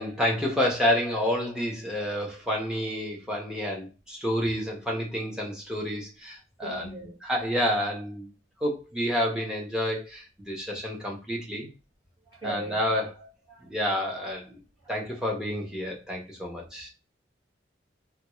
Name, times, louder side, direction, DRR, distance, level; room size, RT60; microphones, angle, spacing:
voice 1, 0.0-6.9 7.2-8.3 8.6-11.7 12.4-13.3 13.6-14.5 14.9-16.9, equal, 5° right, 0.8 m, -29 dB
voice 2, 6.6-7.1 12.3-13.1 13.5-13.6 14.5-14.9, right 1 dB, 20° right, 1.6 m, -40 dB
3.5 x 2.3 x 3.0 m
head